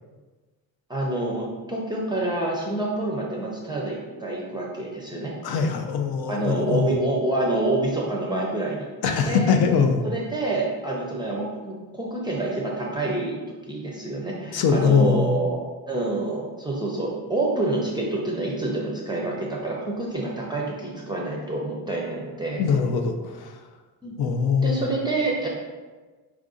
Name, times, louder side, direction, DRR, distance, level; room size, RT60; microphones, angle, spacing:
voice 1, 0.9-5.3 6.3-8.9 9.3-9.6 10.0-13.4 13.7-22.6 24.0-24.2 24.6-25.5, right 2 dB, 10° right, -3 dB, 0.5 m, -27 dB
voice 2, 5.4-7.0 9.0-10.0 14.5-15.4 22.6-23.5 24.2-24.8, left 6 dB, 70° left, 5 dB, 0.6 m, -22 dB
4.7 x 2.5 x 3.7 m, 1.3 s
cardioid pair, 155°, 39 cm